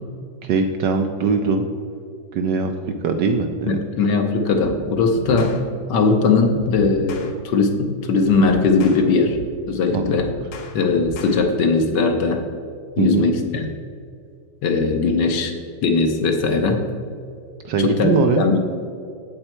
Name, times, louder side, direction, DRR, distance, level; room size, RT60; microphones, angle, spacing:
voice 1, 0.4-1.6 2.3-2.7 3.0-3.8 9.9-10.0 13.0-13.3 17.6-18.4, right 4 dB, 75° right, 5 dB, 1.0 m, -21 dB
voice 2, 3.7-5.6 5.9-9.4 9.7-10.3 10.7-12.4 13.0-13.7 14.6-15.5 15.8-16.8 17.8-18.6, left 4 dB, 65° left, 4 dB, 1.3 m, -19 dB
sound 1, 4.5-4.8 5.2-5.6 6.4-7.3 8.2-9.5 9.9-11.4, left 1 dB, 80° left, 1.8 m, -35 dB
7.8 x 7.8 x 4.4 m, 2.4 s
omnidirectional pair, 2.3 m